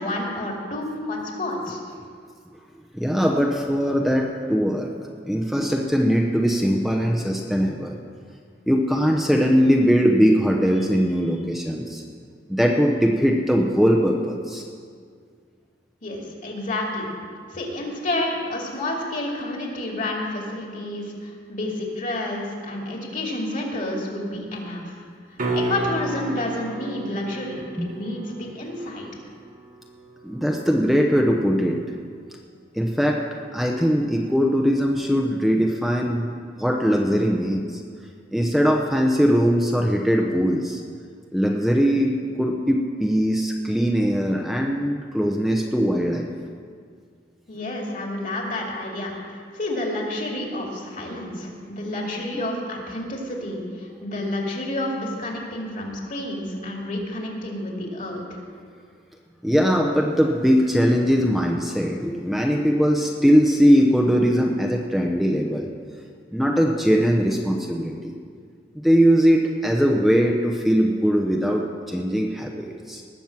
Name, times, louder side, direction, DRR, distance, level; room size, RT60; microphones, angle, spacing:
voice 1, 0.0-1.8 16.0-17.1 17.5-24.9 25.5-29.1 47.5-58.4, left 1 dB, 45° left, 0 dB, 2.4 m, -30 dB
voice 2, 2.9-4.9 5.2-8.0 8.7-12.0 12.5-14.7 27.8-28.0 30.2-31.8 32.7-33.2 33.5-37.8 38.3-40.8 41.3-42.1 42.4-46.3 52.3-52.4 59.4-65.7 66.3-68.1 68.7-73.0, equal, ahead, 0 dB, 0.7 m, -20 dB
sound 1, 25.4-31.4 36.1-36.2, right 1 dB, 50° right, 1.5 m, -33 dB
19.0 x 7.2 x 6.0 m, 2.1 s
head